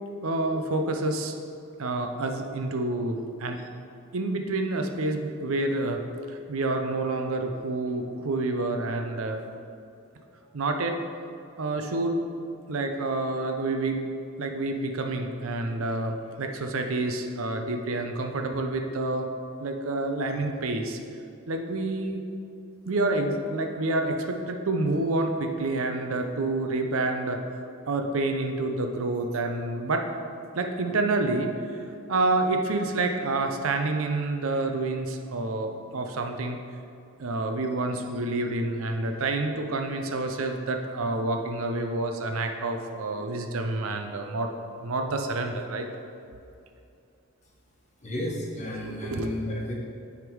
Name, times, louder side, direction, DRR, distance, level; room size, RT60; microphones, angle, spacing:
voice 1, 0.2-1.4 1.8-3.6 4.1-6.0 6.3-9.4 10.5-11.0 11.6-12.2 12.7-14.0 14.4-19.3 19.6-21.0 21.5-22.2 22.9-27.4 27.9-30.0 30.5-31.5 32.1-36.6 37.2-44.5 44.8-45.9 48.8-49.3, right 2 dB, 75° right, 5 dB, 0.6 m, -28 dB
voice 2, 48.0-49.7, equal, 35° left, -2 dB, 1.2 m, -32 dB
9.5 x 3.6 x 4.6 m, 2.6 s
head